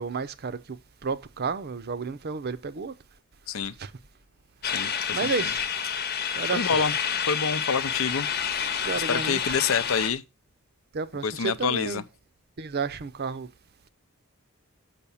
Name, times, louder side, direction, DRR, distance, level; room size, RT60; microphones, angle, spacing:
voice 1, 0.0-2.9 3.8-3.9 5.1-5.6 6.4-6.8 8.8-9.6 10.9-12.0 12.6-13.5, right 4 dB, 50° right, 0.6 m, -31 dB
voice 2, 4.6-5.3 6.5-6.9 7.3-8.3 9.1-10.2 11.2-12.0, left 6 dB, 70° left, 0.6 m, -27 dB
sound 1, 4.6-10.1, left 7 dB, 50° left, 1.0 m, -29 dB
6.9 x 5.7 x 7.0 m
head